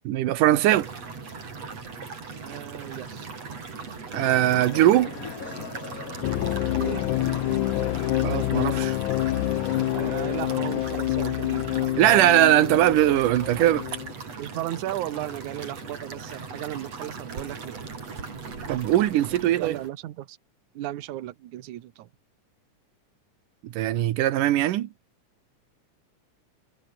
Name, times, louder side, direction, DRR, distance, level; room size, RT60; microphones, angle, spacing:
voice 1, 0.1-0.9 4.1-5.1 8.2-9.0 12.0-13.9 18.7-19.8 23.6-24.9, right 13 dB, 85° right, 2.7 m, -20 dB
sound 1, 0.6-19.9, right 4 dB, 50° right, 5.4 m, -39 dB
voice 2, 2.4-3.3 6.7-7.0 9.9-12.3 14.4-17.8 19.6-20.4 20.7-22.1, right 14 dB, 70° right, 2.6 m, -35 dB
sound 2, 4.1-11.0, left 7 dB, 55° left, 1.0 m, -40 dB
sound 3, 6.2-14.1, left 15 dB, 75° left, 2.2 m, -27 dB
omnidirectional pair, 3.7 m